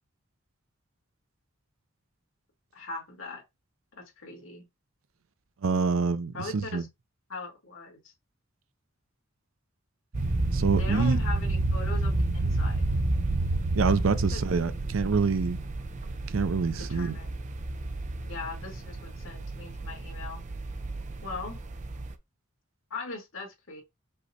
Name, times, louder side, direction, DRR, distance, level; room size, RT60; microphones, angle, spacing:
voice 1, 2.7-3.4 4.2-4.7 6.3-6.9 7.3-8.1 10.8-12.9 14.3-14.4 16.8-17.4 18.2-20.5 21.2-21.6 22.9-23.8, left 3 dB, 75° left, 1.9 m, -40 dB
voice 2, 5.6-6.9 10.5-11.2 13.7-15.6 16.3-17.2, right 4 dB, 85° right, 0.5 m, -26 dB
sound 1, 10.1-22.1, right 2 dB, 35° right, 0.5 m, -30 dB
5.4 x 2.2 x 4.1 m
head